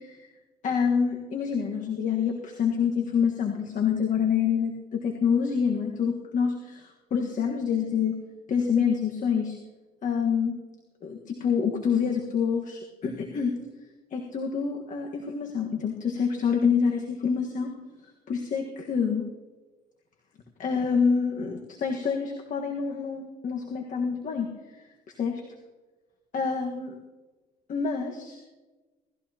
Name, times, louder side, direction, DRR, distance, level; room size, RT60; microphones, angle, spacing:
voice 1, 0.6-6.8 7.1-8.1 8.5-9.6 10.0-10.5 11.0-13.5 14.1-17.7 18.3-19.2 20.6-24.5 25.2-25.3 26.3-26.9 27.7-28.4, left 6 dB, 50° left, 1 dB, 1.6 m, -26 dB
18.0 x 14.5 x 2.9 m, 1.2 s
cardioid pair, 110°, 17 cm